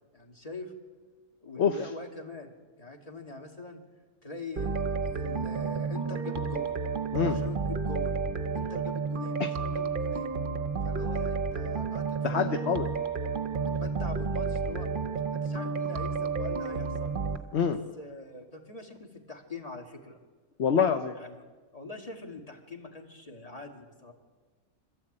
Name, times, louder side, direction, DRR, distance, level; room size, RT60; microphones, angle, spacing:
voice 1, 0.1-0.7 1.4-3.8 4.2-4.8 5.1-6.8 7.2-8.2 8.5-10.4 10.8-12.9 13.6-14.9 15.3-17.1 18.0-20.2 21.2-21.3 21.7-24.1, left 3 dB, 25° left, 1 dB, 2.5 m, -43 dB
sound 1, 4.6-17.4, right 5 dB, 40° right, 1.0 m, -31 dB
voice 2, 12.2-12.9 17.5-17.8 20.6-21.2, left 7 dB, 50° left, 7 dB, 1.0 m, -26 dB
26.0 x 13.0 x 8.8 m, 1.4 s
omnidirectional pair, 1.6 m